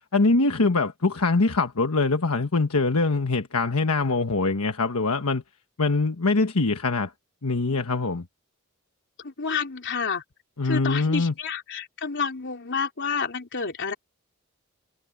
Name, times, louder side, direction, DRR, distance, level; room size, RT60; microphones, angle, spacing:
voice 1, 0.1-5.4 5.8-7.1 7.4-8.2 10.6-11.3, left 3 dB, 75° left, 1.3 m, -23 dB
voice 2, 9.2-10.2 10.6-13.9, left 5 dB, 55° left, 3.5 m, -29 dB
head